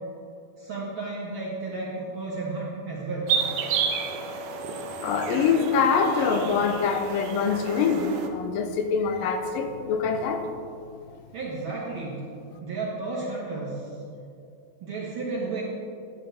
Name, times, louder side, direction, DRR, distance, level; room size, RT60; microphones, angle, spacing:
voice 1, 0.6-3.3 11.3-12.2 12.6-13.9 14.8-15.6, right 3 dB, 55° right, -5 dB, 1.5 m, -32 dB
sound 1, 3.3-8.3, right 6 dB, 80° right, 2.2 m, -31 dB
voice 2, 5.0-10.4 11.1-11.2, left 5 dB, 85° left, 5 dB, 2.6 m, -24 dB
12.0 x 8.9 x 3.4 m, 2.5 s
omnidirectional pair, 3.9 m